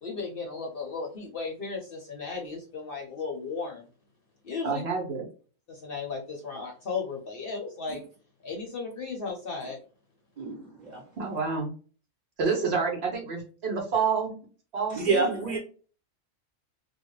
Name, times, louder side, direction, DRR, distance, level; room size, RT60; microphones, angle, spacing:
voice 1, 0.0-3.9 4.4-4.8 5.7-8.0 8.4-9.8, left 4 dB, 55° left, 1 dB, 0.7 m, -35 dB
voice 2, 4.6-5.3 11.2-11.7 12.4-14.4 14.7-15.6, right 5 dB, 60° right, 0 dB, 0.9 m, -29 dB
voice 3, 10.4-11.0 14.9-15.6, right 4 dB, 35° right, -2 dB, 1.2 m, -28 dB
2.4 x 2.2 x 2.9 m, 0.39 s
omnidirectional pair, 1.3 m